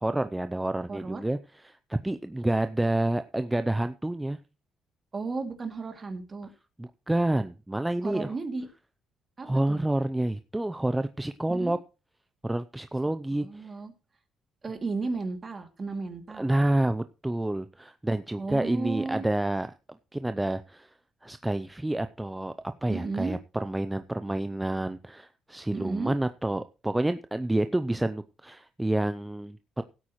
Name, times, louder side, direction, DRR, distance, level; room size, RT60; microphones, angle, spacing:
voice 1, 0.0-1.4 1.6-4.4 6.8-8.3 9.4-11.8 12.4-13.7 16.4-19.7 20.1-20.9 21.2-22.5 22.8-29.8, right 1 dB, 10° right, 10 dB, 0.5 m, -28 dB
voice 2, 0.9-1.2 5.1-6.5 8.0-8.7 9.4-9.8 11.5-11.7 13.3-13.9 14.6-16.5 18.4-19.2 22.9-23.3 25.7-26.1, right 3 dB, 35° right, 5 dB, 2.5 m, -34 dB
16.5 x 8.4 x 3.1 m, 0.30 s
cardioid pair, 90°, 0 cm